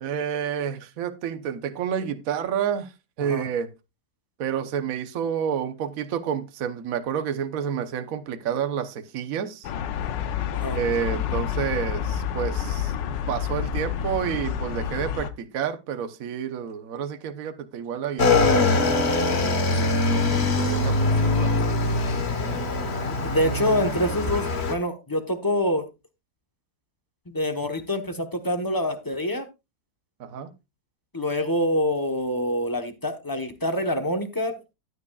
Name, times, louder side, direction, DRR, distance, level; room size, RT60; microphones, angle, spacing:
voice 1, 0.0-2.9 3.2-3.7 4.4-9.7 10.7-12.9 13.3-19.4 20.0-21.6 30.2-30.5, right 8 dB, 55° right, 1.2 m, -29 dB
sound 1, 9.6-15.3, left 9 dB, 85° left, 1.4 m, -29 dB
Motorcycle / Engine, 18.2-24.7, left 3 dB, 40° left, 1.4 m, -23 dB
voice 2, 23.0-25.9 27.3-29.4 31.1-34.5, left 1 dB, 15° left, 0.7 m, -26 dB
12.5 x 9.5 x 2.3 m
omnidirectional pair, 1.9 m